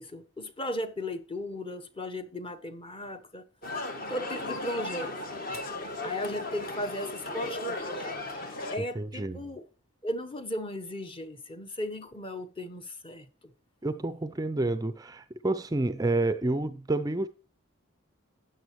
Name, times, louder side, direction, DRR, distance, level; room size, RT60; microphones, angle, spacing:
voice 1, 0.0-3.4 4.1-5.1 6.0-8.2 8.7-9.6 10.0-13.3, left 1 dB, 25° left, 1.0 m, -36 dB
sound 1, 3.6-8.8, left 2 dB, 45° left, 1.8 m, -36 dB
voice 2, 9.0-9.5 13.8-17.3, right 2 dB, 15° right, 0.4 m, -29 dB
12.5 x 9.2 x 3.1 m
head